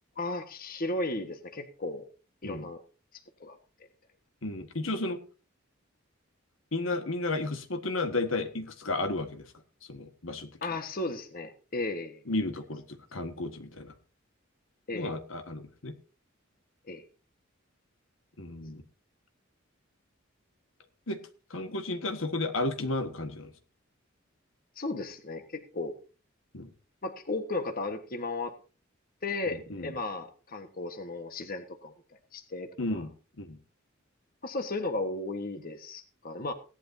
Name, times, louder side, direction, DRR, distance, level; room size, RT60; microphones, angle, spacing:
voice 1, 0.2-2.0 2.4-2.8 3.1-3.6 10.6-12.2 14.9-15.1 16.9-17.0 24.7-26.0 27.0-28.5 29.2-31.9 32.3-33.0 34.4-36.5, left 2 dB, 45° left, 6 dB, 1.4 m, -35 dB
voice 2, 4.4-5.2 6.7-9.5 9.9-10.5 12.3-13.9 14.9-16.0 18.4-18.8 21.1-21.2 21.5-23.5 26.5-26.7 29.5-29.9 32.8-33.1 33.4-33.6, left 2 dB, 75° left, 7 dB, 1.6 m, -33 dB
17.0 x 11.5 x 2.7 m, 0.34 s
head